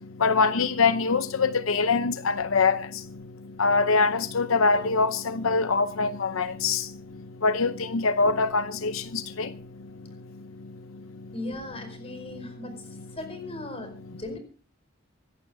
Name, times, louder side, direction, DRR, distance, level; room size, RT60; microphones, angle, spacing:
voice 1, 0.2-3.2 3.6-9.6, left 4 dB, 85° left, 0.7 m, -24 dB
voice 2, 11.3-12.9 13.1-14.4, left 2 dB, 30° left, 5.0 m, -37 dB
25.0 x 11.5 x 3.5 m
head